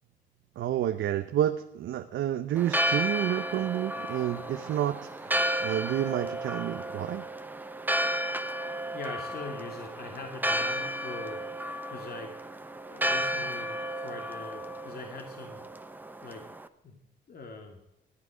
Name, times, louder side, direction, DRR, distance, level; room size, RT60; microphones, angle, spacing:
voice 1, 0.6-7.3, right 11 dB, 75° right, 8 dB, 0.9 m, -30 dB
Church bell, 2.6-16.7, equal, 10° right, 1.0 m, -33 dB
voice 2, 8.9-11.4 11.9-12.3 12.9-15.6 16.2-16.4 16.8-17.0 17.3-17.8, left 3 dB, 50° left, 2 dB, 2.6 m, -42 dB
19.0 x 12.0 x 5.1 m, 0.89 s
cardioid pair, 90°, 20 cm